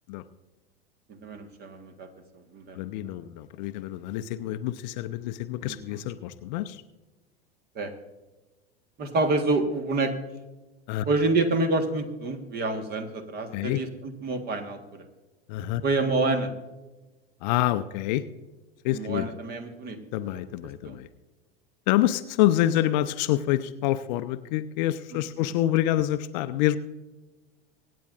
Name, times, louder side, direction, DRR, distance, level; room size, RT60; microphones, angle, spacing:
voice 1, 1.1-2.1 2.3-2.8 5.7-5.8 7.7-7.9 9.0-10.1 11.0-15.0 15.8-16.5 18.9-20.0 20.8-21.0, right 2 dB, 30° right, 8 dB, 1.5 m, -27 dB
voice 2, 2.7-6.8 10.9-11.1 13.5-13.8 15.5-15.8 17.4-18.2 18.8-19.3 20.1-21.1 21.9-26.8, left 14 dB, 45° left, 12 dB, 0.6 m, -27 dB
24.5 x 9.3 x 2.5 m, 1.1 s
figure-of-eight pair, 85°, 31 cm